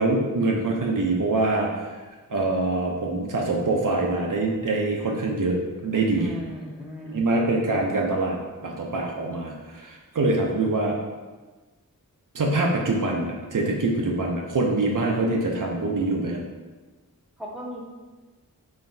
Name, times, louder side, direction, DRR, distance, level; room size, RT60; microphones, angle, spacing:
voice 1, 0.0-2.0 2.3-5.6 5.8-6.4 7.0-11.0 12.3-16.4, right 2 dB, 60° right, 0 dB, 0.6 m, -24 dB
voice 2, 6.2-7.3 17.4-17.8, equal, ahead, -4 dB, 0.7 m, -37 dB
3.9 x 3.4 x 2.6 m, 1.3 s
wide cardioid pair, 65°, 35 cm